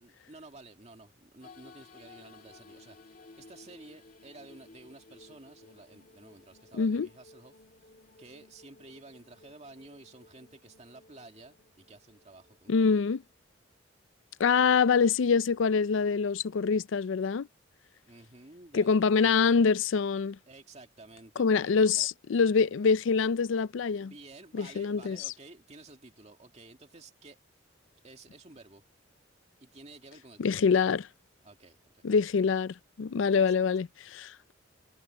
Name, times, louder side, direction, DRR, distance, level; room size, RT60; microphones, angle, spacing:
voice 1, 0.0-7.9 8.2-12.9 18.1-19.3 20.5-22.1 24.0-27.4 28.0-28.8 29.6-30.7 31.4-32.1 33.5-33.6, right 2 dB, 35° right, 2.2 m, -52 dB
sound 1, 1.4-13.2, left 3 dB, 45° left, 2.4 m, -56 dB
voice 2, 6.8-7.1 12.7-13.2 14.4-17.5 18.7-20.4 21.4-24.1 24.5-25.2 30.4-31.1 32.0-34.5, left 5 dB, 70° left, 0.4 m, -25 dB
head